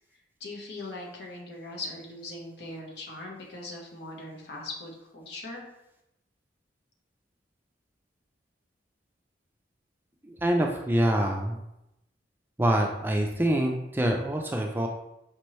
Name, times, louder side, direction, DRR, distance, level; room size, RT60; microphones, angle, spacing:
voice 1, 0.4-5.6, left 2 dB, 70° left, -1 dB, 1.0 m, -40 dB
voice 2, 10.2-11.6 12.6-14.9, right 1 dB, 10° right, 2 dB, 0.3 m, -25 dB
5.1 x 2.9 x 3.1 m, 0.87 s
head